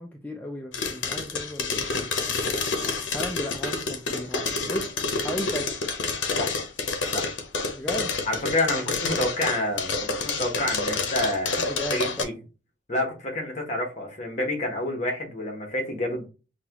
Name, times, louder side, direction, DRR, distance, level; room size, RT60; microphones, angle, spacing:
voice 1, 0.0-2.6 3.1-4.9 5.2-5.7 7.7-8.2 11.5-12.3, equal, 10° left, 0.4 m, -35 dB
sound 1, 0.7-12.2, left 4 dB, 80° left, 0.7 m, -28 dB
voice 2, 8.3-12.3 12.9-16.3, left 1 dB, 40° left, 1.2 m, -28 dB
5.7 x 2.3 x 2.9 m
head